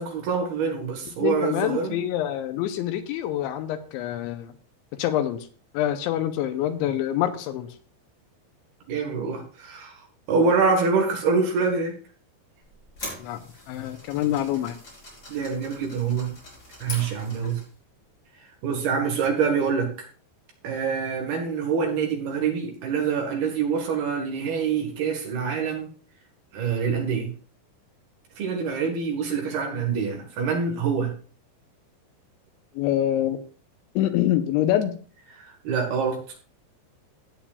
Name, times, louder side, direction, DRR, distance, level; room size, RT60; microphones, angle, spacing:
voice 1, 0.0-2.0 8.9-9.9 10.3-11.9 15.3-16.3 16.8-17.6 18.6-19.9 20.6-25.9 26.5-27.3 28.4-31.1 35.3-36.2, right 5 dB, 65° right, 2 dB, 3.0 m, -25 dB
voice 2, 1.2-4.5 5.0-5.4 5.7-7.7 13.2-13.4 13.7-14.8 32.8-33.4 34.0-34.9, left 12 dB, 80° left, 8 dB, 3.0 m, -25 dB
sound 1, 12.6-17.8, left 1 dB, 20° left, 4.6 m, -42 dB
16.0 x 8.6 x 2.4 m, 0.40 s
omnidirectional pair, 5.6 m